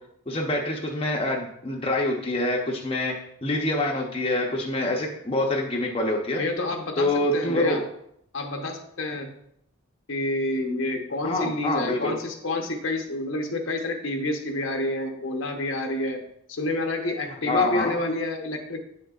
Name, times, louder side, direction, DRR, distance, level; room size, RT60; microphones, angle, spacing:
voice 1, 0.3-3.1 3.4-6.4 7.0-7.8 11.2-12.1 17.5-17.9, left 1 dB, 25° left, 0 dB, 0.7 m, -26 dB
voice 2, 6.3-7.8 8.3-9.3 10.1-16.2 16.5-18.8, left 2 dB, 70° left, 3 dB, 0.9 m, -29 dB
8.5 x 6.4 x 2.4 m, 0.74 s
head